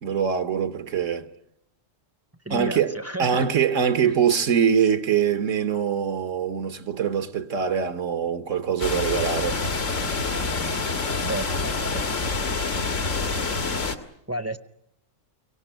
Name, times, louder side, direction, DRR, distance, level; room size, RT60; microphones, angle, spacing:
voice 1, 0.0-1.3 2.5-9.6, right 7 dB, 75° right, 1.6 m, -23 dB
voice 2, 2.4-3.6 4.0-4.1 11.2-12.1 14.3-14.6, right 1 dB, 15° right, 0.7 m, -32 dB
sound 1, 8.8-14.0, left 3 dB, 80° left, 2.0 m, -27 dB
24.0 x 18.0 x 9.0 m
omnidirectional pair, 1.3 m